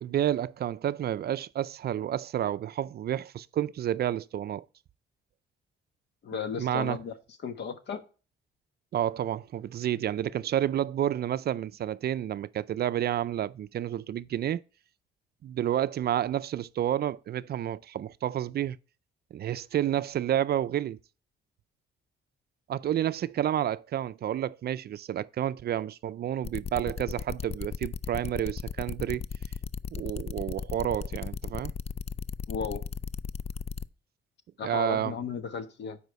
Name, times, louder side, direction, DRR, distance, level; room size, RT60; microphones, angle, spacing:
voice 1, 0.0-4.6 6.6-7.0 8.9-14.6 15.4-18.8 19.3-21.0 22.7-29.2 29.9-31.7 34.6-35.1, right 11 dB, 55° right, 0.4 m, -30 dB
voice 2, 6.2-7.1 7.4-8.0 32.5-32.8 34.6-36.0, left 6 dB, 60° left, 1.2 m, -34 dB
sound 1, 26.4-33.9, left 6 dB, 30° left, 0.4 m, -35 dB
8.1 x 5.0 x 4.6 m
cardioid pair, 90°, 20 cm